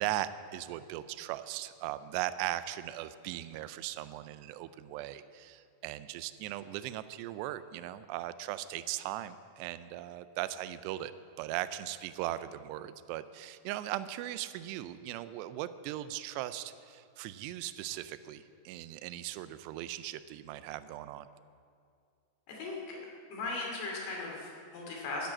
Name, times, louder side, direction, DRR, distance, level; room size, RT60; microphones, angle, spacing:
voice 1, 0.0-11.1 11.4-21.3, right 14 dB, 90° right, 13 dB, 2.7 m, -38 dB
voice 2, 22.5-23.0 23.3-25.3, left 3 dB, 70° left, -2 dB, 4.4 m, -38 dB
13.0 x 10.5 x 7.4 m, 2.3 s
omnidirectional pair, 4.8 m